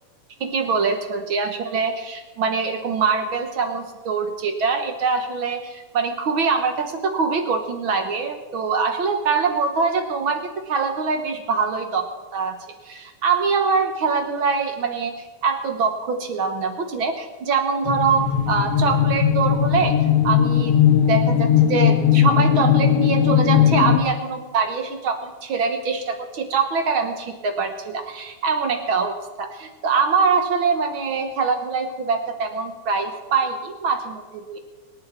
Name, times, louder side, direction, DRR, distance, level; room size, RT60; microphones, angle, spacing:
voice 1, 0.4-12.6 12.8-19.9 20.2-20.8 21.1-34.6, right 5 dB, 55° right, 6 dB, 1.5 m, -23 dB
sound 1, 17.9-24.0, left 9 dB, 65° left, 1.8 m, -18 dB
25.0 x 9.5 x 4.4 m, 1.2 s
omnidirectional pair, 3.5 m